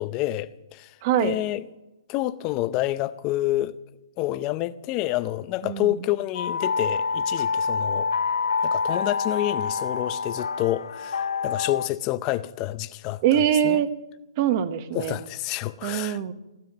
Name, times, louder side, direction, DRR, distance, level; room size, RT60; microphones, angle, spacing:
voice 1, 0.0-0.9 1.2-1.6 2.1-3.8 4.2-8.1 8.6-13.2 13.6-13.8 14.9-16.3, left 15 dB, 20° left, 0.6 m, -28 dB
voice 2, 1.0-1.4 5.6-5.9 13.2-13.9 14.4-15.2 15.8-16.3, right 10 dB, 30° right, 0.9 m, -23 dB
sound 1, 6.3-11.9, left 5 dB, 75° left, 0.5 m, -27 dB
16.0 x 9.1 x 9.0 m
hypercardioid pair, 160°, 3 cm